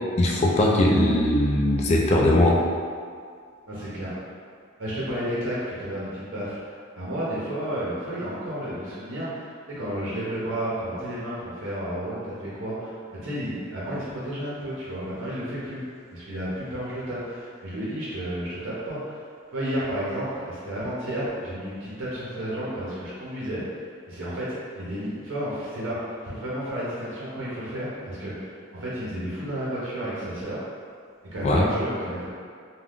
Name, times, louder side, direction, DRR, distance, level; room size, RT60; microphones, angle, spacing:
voice 1, 0.2-2.6 31.4-31.6, left 1 dB, 35° left, -2 dB, 0.3 m, -20 dB
voice 2, 3.7-4.1 4.8-15.8 16.1-19.2 19.5-23.6 24.1-30.6 31.3-32.3, equal, 75° right, -9 dB, 0.7 m, -32 dB
3.4 x 2.2 x 2.4 m, 2.1 s
head